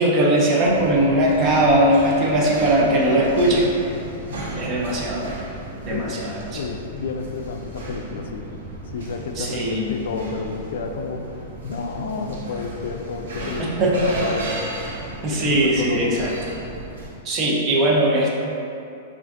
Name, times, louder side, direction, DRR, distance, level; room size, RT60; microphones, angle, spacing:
voice 1, 0.0-3.7 4.6-5.3 5.8-6.7 9.4-10.0 13.6-14.1 15.2-16.3 17.2-18.3, right 1 dB, 20° right, -3 dB, 0.5 m, -20 dB
sound 1, 0.6-17.1, right 1 dB, 80° right, 0.8 m, -34 dB
voice 2, 5.9-6.2 6.5-8.5 8.9-13.8 14.1-14.6 15.3-16.2, left 4 dB, 80° left, 4 dB, 0.3 m, -31 dB
5.8 x 2.5 x 2.5 m, 2.6 s
supercardioid pair, 175°, 0 cm